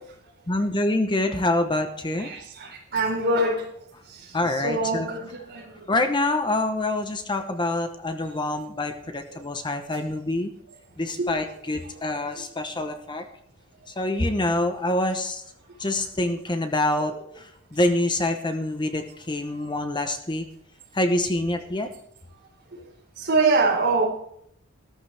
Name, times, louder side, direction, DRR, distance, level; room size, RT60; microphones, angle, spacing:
voice 1, 0.5-2.3 2.6-2.7 4.3-5.1 5.9-10.5 11.0-13.3 13.9-15.4 15.8-20.5 20.9-21.9, left 1 dB, 20° left, 6 dB, 0.8 m, -26 dB
voice 2, 2.2-3.6 4.6-5.7 11.2-11.3 23.2-24.1, right 3 dB, 50° right, -2 dB, 4.3 m, -23 dB
14.0 x 14.0 x 3.4 m, 0.70 s
head